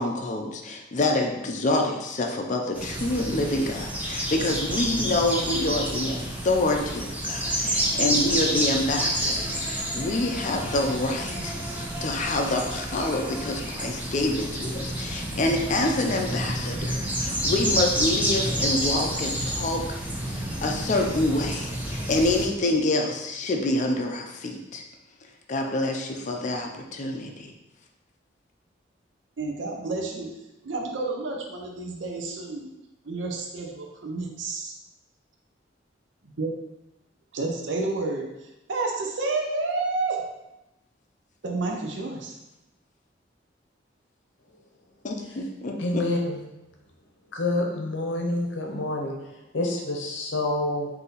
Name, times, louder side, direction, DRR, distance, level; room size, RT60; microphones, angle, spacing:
voice 1, 0.0-19.8 20.2-24.8 25.5-27.5 45.0-46.0, left 2 dB, 40° left, 2 dB, 0.5 m, -27 dB
sound 1, 2.7-22.5, right 1 dB, 10° right, 0.6 m, -29 dB
voice 2, 29.4-30.3 30.6-32.7 33.0-34.7 36.2-36.5 37.3-38.2 38.7-40.2 41.4-42.4, right 3 dB, 70° right, 0 dB, 0.6 m, -30 dB
voice 3, 45.8-46.4 47.3-49.2 49.5-50.9, left 2 dB, 75° left, 1 dB, 0.7 m, -27 dB
4.0 x 2.7 x 3.9 m, 0.94 s
head